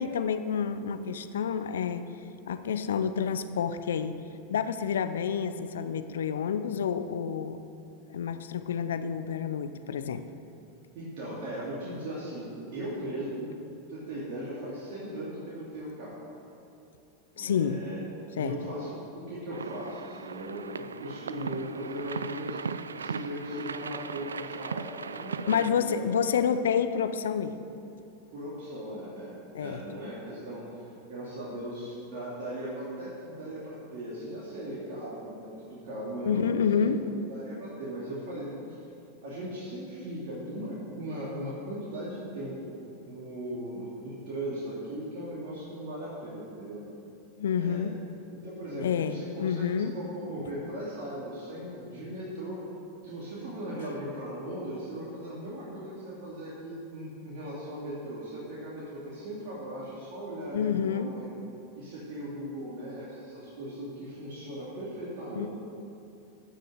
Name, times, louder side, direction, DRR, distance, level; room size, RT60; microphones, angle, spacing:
voice 1, 0.0-2.1 2.4-4.2 4.5-7.6 8.1-10.2 17.4-17.8 18.4-18.5 25.5-27.6 29.5-29.8 36.3-37.0 47.4-48.0 48.8-49.9 60.5-61.1 65.4-65.5, left 7 dB, 75° left, 11 dB, 0.6 m, -29 dB
voice 2, 10.9-13.5 13.9-16.2 17.3-18.0 18.3-22.6 22.9-26.1 28.3-37.0 37.3-38.8 39.2-46.8 47.6-47.9 48.4-52.6 53.0-61.3 61.8-65.5, right 1 dB, 60° right, -7 dB, 2.9 m, -38 dB
sound 1, 19.5-25.7, right 5 dB, 85° right, 0.3 m, -38 dB
15.5 x 6.5 x 6.5 m, 2.7 s
hypercardioid pair, 95°, 0 cm